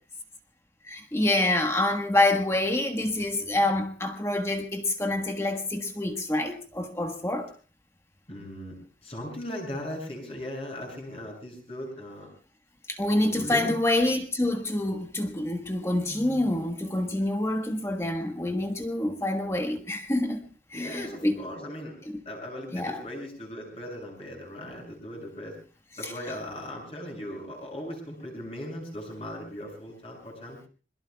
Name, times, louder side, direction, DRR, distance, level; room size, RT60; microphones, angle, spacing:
voice 1, 0.8-7.5 12.9-20.4 20.7-21.4 22.7-23.0 26.0-26.1, left 1 dB, 15° left, 5 dB, 1.3 m, -27 dB
voice 2, 8.3-8.7 9.0-12.3 13.2-13.7 20.7-22.0 22.2-25.5 26.0-30.6, left 1 dB, 30° left, -1 dB, 6.8 m, -38 dB
26.5 x 22.0 x 2.3 m, 0.37 s
head